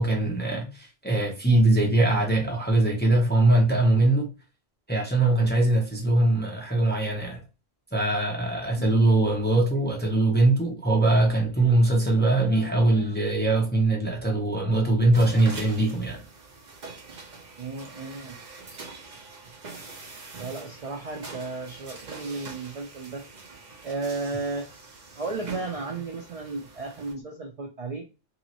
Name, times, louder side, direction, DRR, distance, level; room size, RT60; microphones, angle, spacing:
voice 1, 0.0-4.3 4.9-7.4 7.9-16.2, right 2 dB, 15° left, 0.4 m, -22 dB
voice 2, 8.8-9.2 17.6-18.4 20.4-23.2 23.8-24.7 25.2-28.1, right 3 dB, 65° right, 0.3 m, -34 dB
sound 1, 15.1-27.1, right 4 dB, 45° right, 0.7 m, -44 dB
3.0 x 2.8 x 2.8 m
omnidirectional pair, 1.3 m